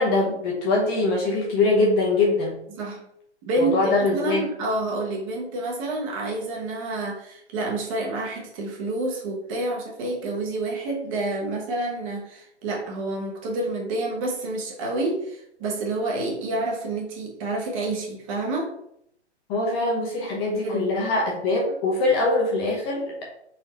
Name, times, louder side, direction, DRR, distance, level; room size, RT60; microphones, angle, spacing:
voice 1, 0.0-2.5 3.6-4.5 19.5-23.2, left 2 dB, 20° left, -2 dB, 0.8 m, -23 dB
voice 2, 2.7-3.1 3.5-18.7 20.6-20.8, right 2 dB, 30° right, -1 dB, 1.1 m, -28 dB
4.1 x 3.9 x 3.2 m, 0.73 s
hypercardioid pair, 135°, 35 cm